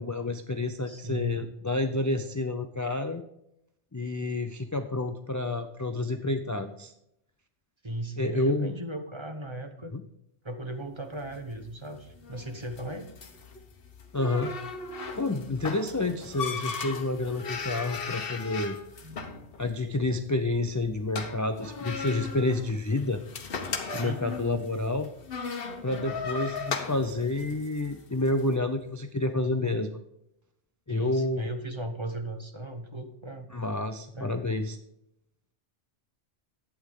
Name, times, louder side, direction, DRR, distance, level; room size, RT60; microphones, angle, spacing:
voice 1, 0.0-3.2 3.9-6.9 8.2-8.7 9.9-10.0 14.1-14.5 15.1-18.8 19.6-23.2 23.9-25.1 25.8-30.0 30.9-31.5 33.5-34.8, left 2 dB, 25° left, 7 dB, 0.4 m, -29 dB
voice 2, 0.9-1.4 7.8-9.9 10.4-13.1 19.0-19.3 24.0-24.3 30.9-33.5 34.1-34.4, right 1 dB, 25° right, 6 dB, 1.1 m, -37 dB
sound 1, 11.2-28.4, left 4 dB, 55° left, 1.2 m, -38 dB
11.5 x 8.6 x 3.7 m, 0.81 s
omnidirectional pair, 1.2 m